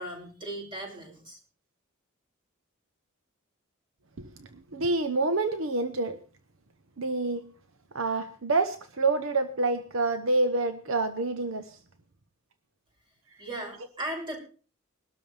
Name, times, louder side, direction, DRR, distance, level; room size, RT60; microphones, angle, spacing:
voice 1, 0.0-1.4 13.4-14.4, right 1 dB, 25° right, -1 dB, 6.6 m, -37 dB
voice 2, 4.2-6.2 7.0-7.4 7.9-11.8, right 3 dB, 65° right, 9 dB, 0.9 m, -27 dB
22.0 x 12.5 x 3.4 m, 0.39 s
head